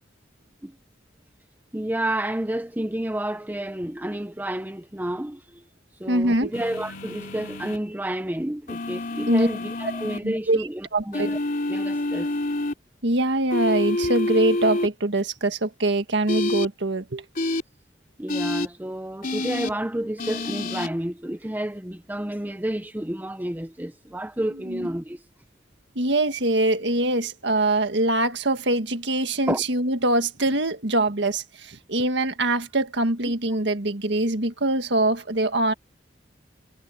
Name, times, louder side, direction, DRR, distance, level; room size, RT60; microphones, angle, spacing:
voice 1, 1.7-5.6 6.0-11.4 11.7-12.3 18.2-25.2 29.5-29.6 33.2-33.3, right 1 dB, 10° right, 0.7 m, -30 dB
voice 2, 6.1-6.5 9.3-9.5 10.2-10.6 10.9-11.3 13.0-17.2 24.7-24.9 26.0-35.7, right 2 dB, 65° right, 1.8 m, -23 dB
sound 1, 6.5-7.8 8.7-10.2 11.1-12.7 13.5-14.9 16.3-16.7 17.3-17.6 18.3-18.7 19.2-19.7 20.2-20.9, left 2 dB, 45° left, 3.8 m, -27 dB
head